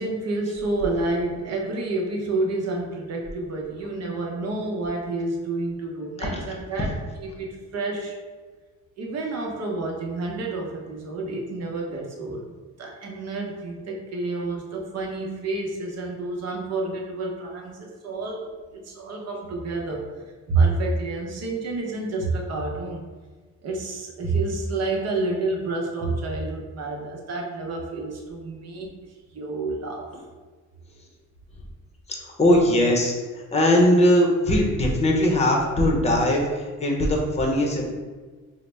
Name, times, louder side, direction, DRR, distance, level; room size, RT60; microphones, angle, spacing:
voice 1, 0.0-6.9 7.2-8.2 9.0-20.1 20.5-23.1 23.6-28.9 29.3-30.1, right 3 dB, 55° right, 0 dB, 0.8 m, -29 dB
voice 2, 6.2-6.5 6.8-6.9 31.0-31.1 32.1-37.9, left 1 dB, 20° left, 0 dB, 0.7 m, -21 dB
3.9 x 2.1 x 3.2 m, 1.4 s
cardioid pair, 90°, 30 cm